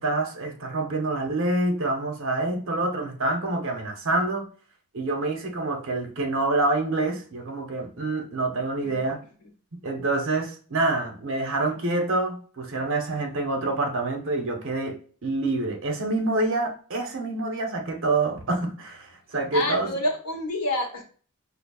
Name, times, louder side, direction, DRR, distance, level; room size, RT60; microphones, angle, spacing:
voice 1, 0.0-4.5 4.9-9.2 9.8-19.9, right 2 dB, 60° right, 0.7 m, -27 dB
voice 2, 19.5-21.0, left 1 dB, 75° left, 0.9 m, -28 dB
5.0 x 2.5 x 2.3 m
head